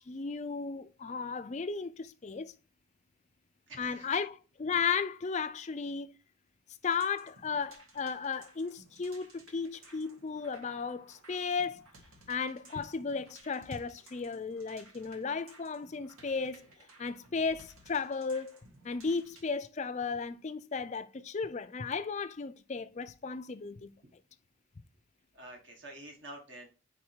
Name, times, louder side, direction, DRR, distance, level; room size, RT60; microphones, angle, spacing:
voice 1, 0.0-2.5 3.8-4.3 4.6-6.1 6.8-11.9 12.3-16.7 17.0-18.6 18.8-23.9, left 5 dB, 35° left, 0.4 m, -35 dB
voice 2, 3.7-4.2 25.3-26.7, right 1 dB, 55° right, 1.4 m, -48 dB
sound 1, 6.8-19.5, right 2 dB, 85° right, 1.7 m, -58 dB
4.8 x 4.7 x 4.4 m
head